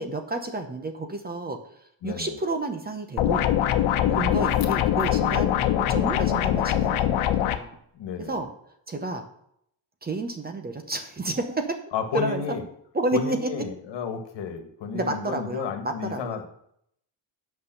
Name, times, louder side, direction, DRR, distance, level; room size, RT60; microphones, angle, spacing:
voice 1, 0.0-3.5 4.1-7.7 8.2-8.5 8.9-9.3 10.0-11.8 12.1-12.4 12.9-13.5 14.9-16.4, right 2 dB, 20° right, 7 dB, 0.8 m, -30 dB
voice 2, 2.0-2.3 4.0-4.3 7.9-8.4 11.9-12.6 13.1-16.5, left 6 dB, 65° left, 7 dB, 1.7 m, -32 dB
sound 1, 3.2-7.6, left 11 dB, 90° left, 1.0 m, -23 dB
8.5 x 5.8 x 7.8 m, 0.71 s
cardioid pair, 170°, 47 cm